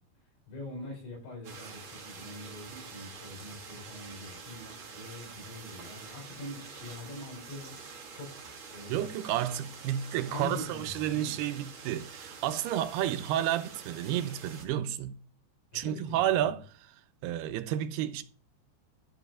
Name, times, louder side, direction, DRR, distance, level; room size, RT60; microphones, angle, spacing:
voice 1, 0.5-7.7 8.1-8.4 8.7-9.1 10.3-11.4 15.8-16.6, left 2 dB, 85° left, 6.8 m, -43 dB
sound 1, 1.4-14.6, right 5 dB, 55° right, 1.4 m, -47 dB
voice 2, 8.9-15.1 15.7-18.2, right 11 dB, 80° right, 2.4 m, -31 dB
11.0 x 5.0 x 6.5 m
omnidirectional pair, 5.1 m